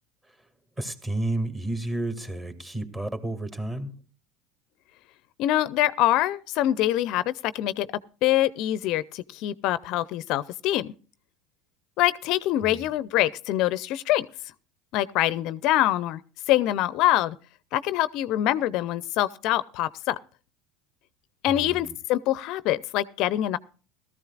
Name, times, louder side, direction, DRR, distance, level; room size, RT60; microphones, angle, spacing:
voice 1, 0.8-4.0 12.6-12.9 21.5-21.9, right 2 dB, 20° right, 2.1 m, -31 dB
voice 2, 5.4-7.9 8.2-10.9 12.0-14.3 14.9-16.2 16.5-17.3 17.7-20.2 21.4-23.6, left 14 dB, 60° left, 0.5 m, -24 dB
18.0 x 14.0 x 2.4 m
hypercardioid pair, 90°, 0 cm